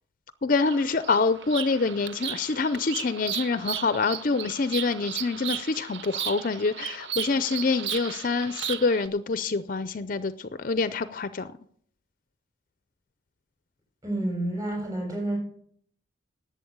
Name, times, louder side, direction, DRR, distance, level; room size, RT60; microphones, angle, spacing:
voice 1, 0.4-11.5, left 4 dB, 45° left, 13 dB, 0.5 m, -26 dB
Bird vocalization bird call bird song, 0.6-9.1, right 9 dB, 60° right, 0.8 m, -35 dB
voice 2, 14.0-15.4, right 1 dB, 20° right, -2 dB, 7.0 m, -29 dB
11.0 x 8.4 x 8.5 m, 0.63 s
head